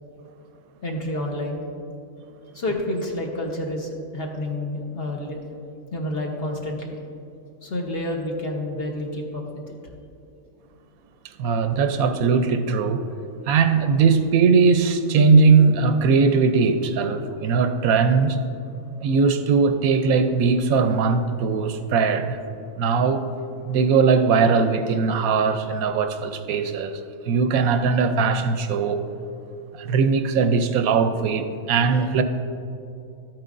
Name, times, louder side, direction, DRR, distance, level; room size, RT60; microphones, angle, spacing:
voice 1, 0.8-1.6 2.5-5.4 5.9-7.0 7.6-9.7, left 1 dB, 45° left, 0 dB, 1.1 m, -29 dB
voice 2, 11.4-13.0 13.5-18.4 19.0-22.4 22.8-23.3 23.6-27.0 27.3-29.0 29.7-32.2, right 5 dB, 75° right, 8 dB, 1.0 m, -20 dB
12.5 x 9.0 x 2.5 m, 2.7 s
omnidirectional pair, 1.5 m